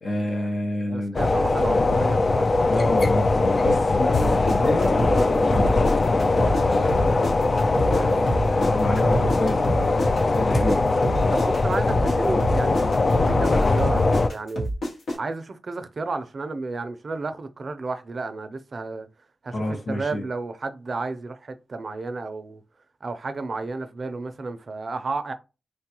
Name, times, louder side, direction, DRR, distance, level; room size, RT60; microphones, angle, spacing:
voice 1, 0.0-1.2 2.7-5.9 6.6-7.3 7.9-10.9 19.5-20.3, left 1 dB, 60° left, 0.7 m, -29 dB
voice 2, 0.8-2.5 11.3-14.7 15.2-19.1 19.4-19.5 19.9-22.6 23.0-25.3, right 3 dB, 55° right, 0.4 m, -32 dB
sound 1, 1.1-14.3, left 3 dB, 45° left, 0.3 m, -21 dB
sound 2, 4.1-6.6 6.9-10.8 11.0-15.2, right 1 dB, 85° left, 1.2 m, -28 dB
3.2 x 2.3 x 2.9 m
cardioid pair, 70°, 0 cm